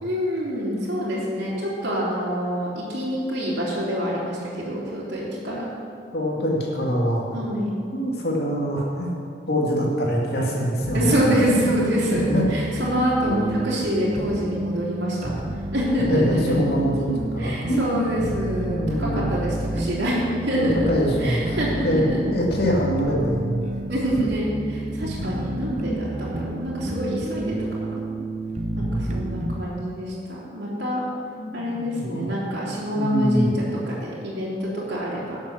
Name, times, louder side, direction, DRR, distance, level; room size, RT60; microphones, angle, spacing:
voice 1, 0.0-5.6 7.3-7.7 10.9-12.2 12.5-15.3 15.7-16.5 17.4-20.9 21.2-22.3 23.9-28.1 28.8-31.0 31.5-35.4, equal, 70° right, -8 dB, 3.1 m, -26 dB
voice 2, 6.1-7.2 7.9-9.1 9.5-11.7 12.3-12.5 13.3-13.4 15.9-18.0 18.6-19.3 20.6-21.6 21.8-23.7 28.7-29.3 31.4-32.3 32.9-33.5, equal, 60° left, -3 dB, 2.4 m, -24 dB
sound 1, 10.8-29.5, right 1 dB, 40° right, 0.9 m, -30 dB
11.5 x 7.4 x 6.5 m, 2.5 s
head